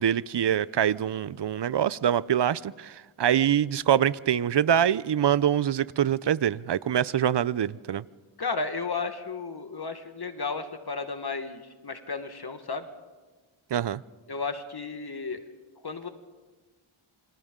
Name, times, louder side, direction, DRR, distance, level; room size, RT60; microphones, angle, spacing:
voice 1, 0.0-8.0 13.7-14.0, right 9 dB, 60° right, 19 dB, 0.6 m, -24 dB
voice 2, 8.4-12.9 14.3-15.4 15.8-16.1, left 4 dB, 50° left, 8 dB, 1.4 m, -33 dB
28.0 x 25.0 x 3.8 m, 1.3 s
wide cardioid pair, 85°, 50 cm